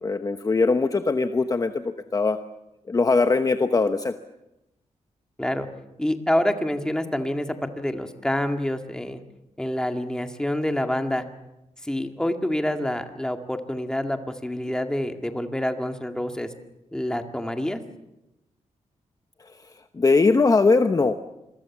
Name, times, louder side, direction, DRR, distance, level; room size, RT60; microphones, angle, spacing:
voice 1, 0.0-1.8 2.1-2.4 2.9-4.1 19.9-21.1, left 4 dB, 30° left, 8 dB, 1.0 m, -20 dB
voice 2, 6.0-9.2 9.6-11.2 11.8-16.5 16.9-17.8, left 1 dB, 5° left, 5 dB, 2.1 m, -27 dB
27.0 x 23.0 x 7.3 m, 0.92 s
wide cardioid pair, 140°, 13 cm